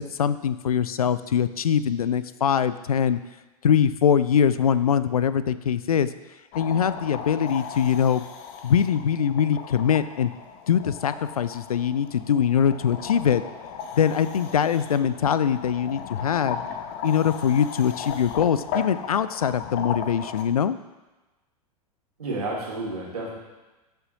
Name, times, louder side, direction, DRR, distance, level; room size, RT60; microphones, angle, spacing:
voice 1, 0.0-3.2 3.6-6.1 6.6-8.2 8.6-10.3 10.7-13.4 13.9-16.6 17.0-20.8, left 8 dB, 70° left, 14 dB, 0.4 m, -22 dB
sound 1, 6.5-20.4, left 7 dB, 40° left, 0.9 m, -36 dB
voice 2, 22.2-23.3, right 2 dB, 75° right, -3 dB, 2.6 m, -30 dB
12.5 x 7.0 x 2.9 m, 1.1 s
figure-of-eight pair, 90°, 19 cm